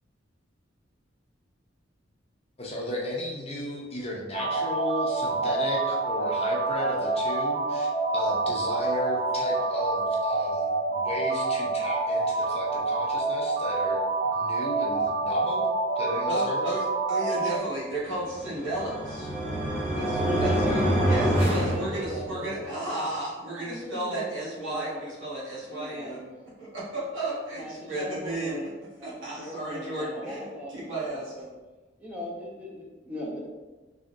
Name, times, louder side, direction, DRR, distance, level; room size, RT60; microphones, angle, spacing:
voice 1, 2.6-15.6 16.0-16.7, left 1 dB, 30° left, -3 dB, 0.7 m, -34 dB
sound 1, 4.3-17.6, right 3 dB, 60° right, 0.7 m, -27 dB
voice 2, 16.3-19.3 19.9-20.5 21.0-26.3 26.6-28.6 29.0-31.3, right 1 dB, 85° right, -8 dB, 1.3 m, -33 dB
sound 2, 18.2-22.5, right 1 dB, 35° right, 1.0 m, -26 dB
voice 3, 20.2-23.0 23.5-25.0 25.7-26.1 27.5-28.7 29.0-31.5 32.0-33.4, left 1 dB, 10° right, -4 dB, 0.7 m, -38 dB
3.7 x 3.4 x 2.6 m, 1.2 s
head